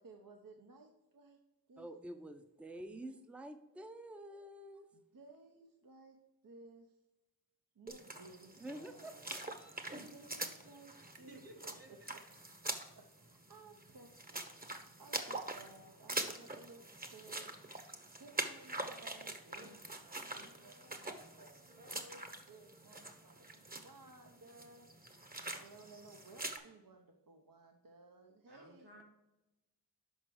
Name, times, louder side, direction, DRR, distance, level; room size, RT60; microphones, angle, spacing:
voice 1, 0.0-1.4 1.7-1.9 4.9-7.0 7.7-9.3 10.1-11.4 11.9-12.0 12.9-14.5 15.0-17.6 18.2-24.9 25.5-28.9, right 3 dB, 60° right, 3 dB, 0.8 m, -58 dB
voice 2, 1.8-4.9 8.6-9.9, right 1 dB, 5° right, 7 dB, 0.6 m, -49 dB
sound 1, 7.9-26.6, right 1 dB, 25° right, 1.0 m, -44 dB
voice 3, 11.0-12.1 19.6-20.6 28.5-29.0, right 1 dB, 90° right, -3 dB, 2.4 m, -59 dB
6.3 x 5.1 x 4.7 m, 0.98 s
cardioid pair, 45°, 38 cm